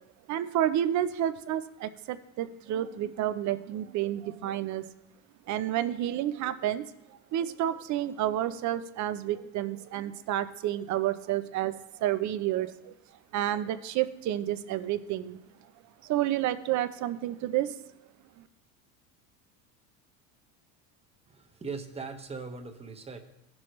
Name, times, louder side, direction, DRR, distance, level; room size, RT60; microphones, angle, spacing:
voice 1, 0.3-4.9 5.5-6.8 7.3-12.9 13.3-15.4 16.0-17.7 18.4-18.5, right 12 dB, 45° right, 12 dB, 0.7 m, -30 dB
voice 2, 21.2-23.2, right 4 dB, 15° right, 5 dB, 1.0 m, -40 dB
15.5 x 6.2 x 3.2 m, 0.88 s
supercardioid pair, 115°, 41 cm